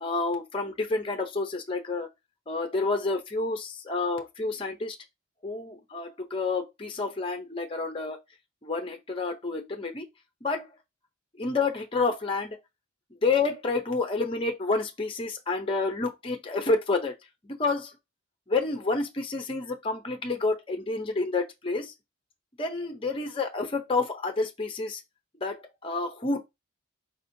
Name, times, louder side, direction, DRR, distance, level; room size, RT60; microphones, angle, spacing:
voice 1, 0.0-2.1 2.5-5.0 5.4-8.2 8.6-10.1 10.4-10.7 11.4-12.5 13.2-17.1 17.4-17.9 18.5-21.9 22.6-25.0 25.4-26.4, left 3 dB, 25° left, 0.6 m, -29 dB
4.2 x 4.2 x 2.7 m
head